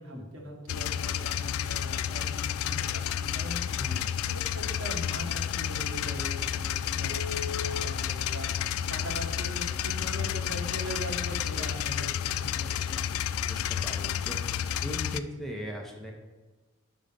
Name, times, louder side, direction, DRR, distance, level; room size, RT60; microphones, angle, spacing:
voice 1, 0.0-3.8 4.3-13.0, equal, 70° right, 0 dB, 1.4 m, -41 dB
sound 1, 0.7-15.2, left 9 dB, 90° left, 0.3 m, -31 dB
voice 2, 3.8-4.1 13.5-14.6 14.8-16.1, equal, ahead, 0 dB, 0.7 m, -39 dB
Telephone, 7.1-11.9 12.4-12.5 12.9-13.1 13.4-13.7 14.0-14.1, left 5 dB, 50° left, 0.7 m, -42 dB
5.5 x 5.2 x 5.2 m, 1.2 s
head